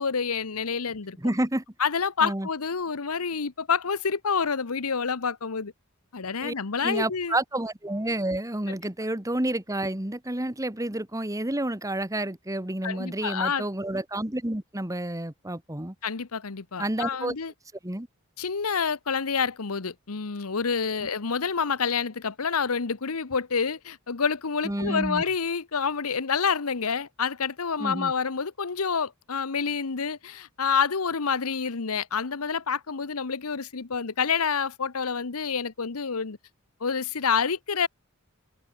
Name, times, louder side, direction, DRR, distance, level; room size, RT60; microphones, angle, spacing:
voice 1, 0.0-1.2 1.8-5.7 6.1-7.3 8.7-8.8 12.8-13.6 16.0-17.5 18.4-36.4 36.8-37.9, left 6 dB, 85° left, 1.0 m, -28 dB
voice 2, 1.2-1.6 2.2-2.5 6.4-6.5 6.8-15.9 16.8-17.3 17.8-18.1 24.6-25.2 27.8-28.1, right 1 dB, 15° right, 1.5 m, -29 dB
head